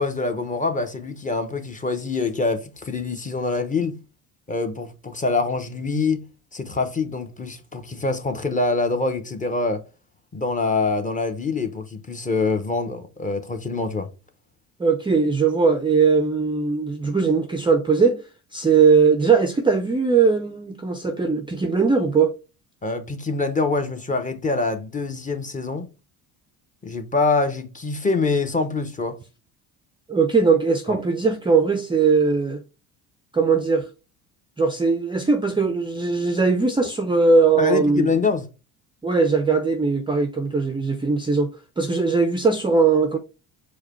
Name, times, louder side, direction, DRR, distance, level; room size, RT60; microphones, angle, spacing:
voice 1, 0.0-4.0 4.5-6.2 6.5-9.8 10.3-14.1 22.8-25.9 26.8-29.2 30.9-31.0 37.6-38.5, left 3 dB, 20° left, 0.9 m, -25 dB
voice 2, 14.8-18.2 18.5-22.3 30.1-32.6 33.3-33.9 34.6-38.1 39.0-43.2, right 4 dB, 15° right, 0.5 m, -20 dB
4.8 x 2.2 x 4.3 m
supercardioid pair, 85°, 39 cm